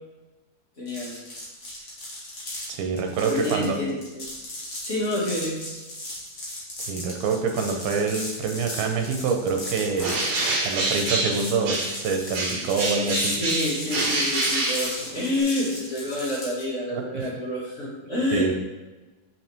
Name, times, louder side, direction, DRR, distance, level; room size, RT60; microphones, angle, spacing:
voice 1, 0.8-1.2 3.2-4.3 4.8-5.6 13.1-18.5, left 1 dB, 25° left, -7 dB, 1.8 m, -28 dB
sound 1, 0.9-16.7, left 1 dB, 80° left, 0.7 m, -36 dB
voice 2, 2.7-3.8 6.9-10.1 10.6-13.4 16.9-17.3 18.3-18.5, right 4 dB, 75° right, 4 dB, 2.7 m, -26 dB
Bird, 10.0-12.1 12.3-15.4, right 2 dB, 55° right, 2.4 m, -27 dB
7.8 x 5.5 x 3.6 m, 1.2 s
omnidirectional pair, 4.5 m